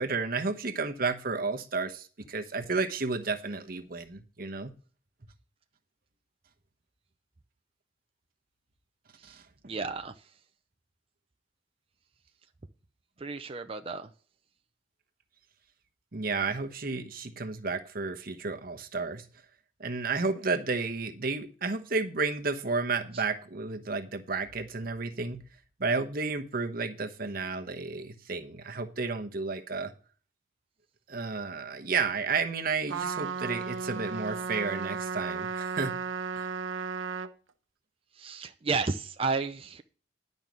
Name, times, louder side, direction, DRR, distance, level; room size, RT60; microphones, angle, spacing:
voice 1, 0.0-4.7 9.3-9.4 16.1-19.2 19.8-25.4 25.8-29.9 31.1-35.9 36.3-36.5, right 4 dB, 50° right, 1.1 m, -32 dB
voice 2, 9.7-10.1 13.2-14.1 23.1-23.2 38.2-39.8, right 4 dB, 30° right, 0.5 m, -32 dB
Trumpet, 32.9-37.3, right 5 dB, 90° right, 0.8 m, -34 dB
11.0 x 5.4 x 6.2 m
head